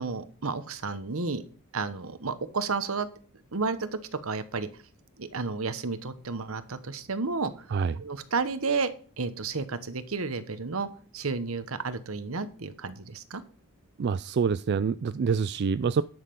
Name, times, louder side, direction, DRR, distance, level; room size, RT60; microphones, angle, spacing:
voice 1, 0.0-1.4 1.7-3.1 3.5-3.9 4.2-4.7 5.2-7.5 8.0-8.9 9.2-10.9 11.1-13.4, right 4 dB, 75° right, 12 dB, 1.1 m, -31 dB
voice 2, 14.0-16.0, right 5 dB, 50° right, 14 dB, 0.4 m, -26 dB
11.0 x 6.6 x 5.3 m, 0.42 s
head